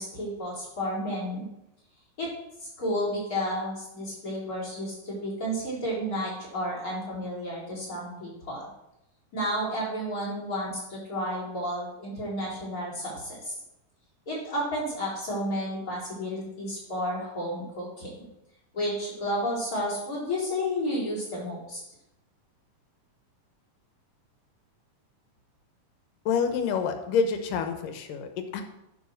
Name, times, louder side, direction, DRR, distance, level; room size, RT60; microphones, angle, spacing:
voice 1, 0.0-1.4 2.2-2.3 2.6-8.6 9.3-13.5 14.3-18.1 18.7-21.8, equal, 25° left, -6 dB, 4.3 m, -31 dB
voice 2, 26.3-28.6, left 6 dB, 80° left, 7 dB, 2.5 m, -27 dB
10.5 x 4.9 x 6.4 m, 0.87 s
omnidirectional pair, 3.8 m